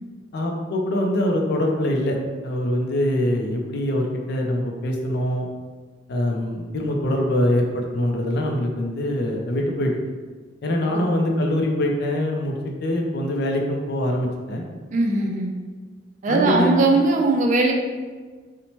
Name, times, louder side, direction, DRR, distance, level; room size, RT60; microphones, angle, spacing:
voice 1, 0.3-2.2 2.4-5.5 6.1-9.9 10.6-12.5 12.8-14.6 16.3-16.8, left 1 dB, 60° left, 1 dB, 0.4 m, -23 dB
voice 2, 14.9-15.5 16.2-17.7, right 3 dB, 45° right, 1 dB, 0.3 m, -20 dB
2.8 x 2.1 x 2.9 m, 1.4 s
head